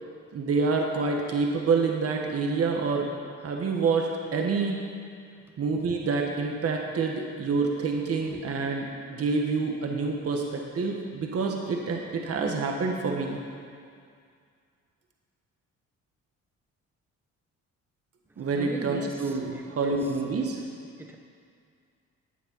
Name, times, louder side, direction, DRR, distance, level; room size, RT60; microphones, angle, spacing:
voice 1, 0.3-3.1 3.4-4.8 5.6-13.4 18.4-20.6, right 4 dB, 50° right, 1 dB, 1.6 m, -27 dB
voice 2, 18.6-19.1 19.5-20.0 21.0-21.2, right 1 dB, 5° right, 3 dB, 1.1 m, -38 dB
15.0 x 9.2 x 5.7 m, 2.2 s
cardioid pair, 90°, 30 cm